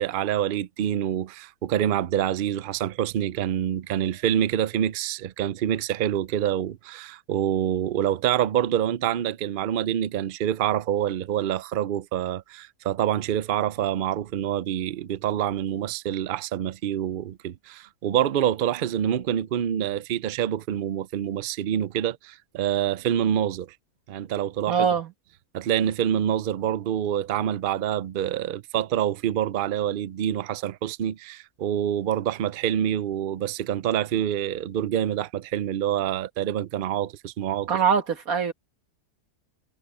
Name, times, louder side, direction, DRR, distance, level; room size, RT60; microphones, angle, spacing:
voice 1, 0.0-23.8 24.1-24.9 25.5-37.7, right 10 dB, 90° right, 0.4 m, -26 dB
voice 2, 24.7-25.1 37.7-38.5, right 7 dB, 65° right, 2.0 m, -23 dB
omnidirectional pair, 1.6 m